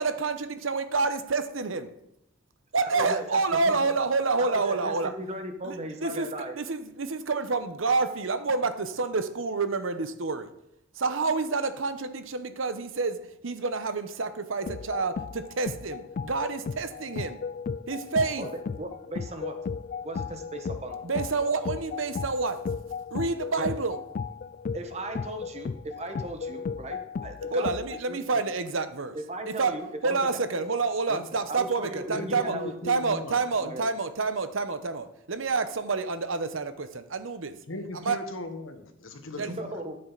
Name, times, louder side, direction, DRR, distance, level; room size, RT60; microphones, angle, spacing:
voice 1, 0.0-1.9 2.7-5.1 5.6-6.3 6.6-10.5 11.0-17.4 17.9-18.5 21.0-22.6 23.1-24.0 27.5-29.2 29.5-32.6 32.9-37.5 38.0-38.2 39.4-39.6, right 4 dB, 85° right, 11 dB, 0.9 m, -28 dB
voice 2, 2.9-3.9 4.4-6.6 18.3-19.6 20.0-21.0 23.6-23.7 24.7-28.2 29.1-30.4 31.1-31.2 31.5-32.9 33.6-33.9 39.4-40.0, right 1 dB, 35° right, 6 dB, 1.3 m, -37 dB
sound 1, 14.6-28.0, left 5 dB, 45° left, 0.3 m, -35 dB
voice 3, 31.8-33.7 37.7-39.8, left 2 dB, 85° left, 7 dB, 1.4 m, -38 dB
13.0 x 7.8 x 4.0 m, 0.78 s
head